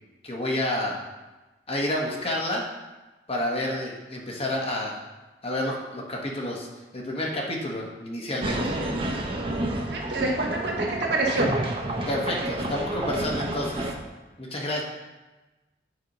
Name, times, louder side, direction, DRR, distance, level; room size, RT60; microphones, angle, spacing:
voice 1, 0.2-1.0 1.7-2.6 3.3-5.0 5.4-6.7 6.9-8.7 12.1-13.9 14.4-14.8, left 1 dB, 35° left, -1 dB, 1.3 m, -29 dB
sound 1, 8.4-13.9, right 1 dB, 30° right, 0.9 m, -29 dB
voice 2, 9.9-11.5, right 2 dB, 70° right, -2 dB, 1.6 m, -26 dB
8.4 x 4.5 x 5.3 m, 1.1 s
head